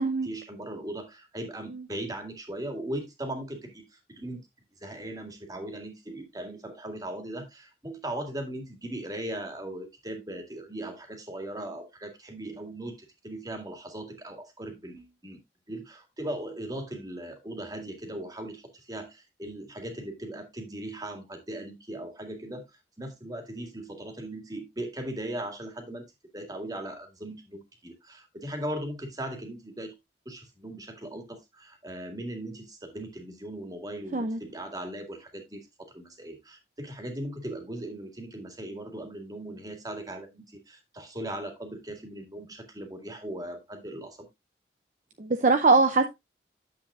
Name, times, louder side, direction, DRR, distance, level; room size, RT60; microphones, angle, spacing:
voice 1, 0.2-4.4 4.8-15.4 15.7-22.6 23.0-26.0 26.3-29.9 30.3-44.3, right 1 dB, 20° right, 2.0 m, -38 dB
voice 2, 45.2-46.1, right 3 dB, 45° right, 0.6 m, -22 dB
9.7 x 7.5 x 2.4 m
head